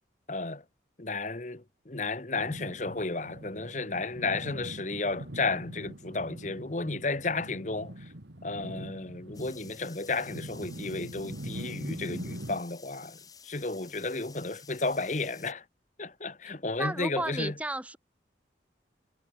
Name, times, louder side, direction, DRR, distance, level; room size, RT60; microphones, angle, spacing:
voice 1, 0.3-0.6 1.0-8.1 8.4-15.6 16.0-17.5, left 3 dB, 40° left, 1.2 m, -33 dB
sound 1, 2.4-12.6, right 1 dB, 80° right, 2.7 m, -42 dB
sound 2, 9.3-15.5, left 7 dB, 20° left, 1.9 m, -52 dB
voice 2, 16.8-18.0, right 1 dB, 10° right, 1.6 m, -33 dB
head